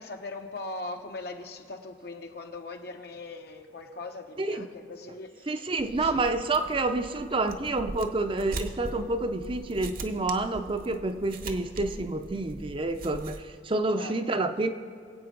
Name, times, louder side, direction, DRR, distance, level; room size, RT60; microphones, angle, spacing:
voice 1, 0.0-6.3 6.6-6.7 13.9-14.4, left 2 dB, 65° left, 4 dB, 1.1 m, -41 dB
voice 2, 5.5-14.7, right 2 dB, 30° right, 8 dB, 0.6 m, -28 dB
sound 1, 5.8-13.4, right 2 dB, 55° right, 0.9 m, -41 dB
23.0 x 8.4 x 3.9 m, 2.3 s
head